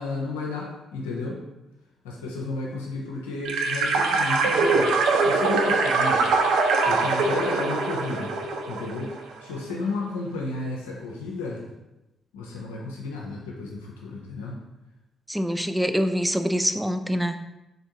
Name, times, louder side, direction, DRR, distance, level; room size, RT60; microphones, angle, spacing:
voice 1, 0.0-1.4 2.0-6.2 6.8-8.3 8.7-11.6 12.3-14.6, left 3 dB, 85° left, -2 dB, 0.5 m, -33 dB
sound 1, 3.4-9.2, right 3 dB, 75° right, 0.4 m, -23 dB
voice 2, 15.3-17.4, equal, 5° right, 8 dB, 0.4 m, -25 dB
3.9 x 3.4 x 2.8 m, 0.96 s
hypercardioid pair, 40°, 0 cm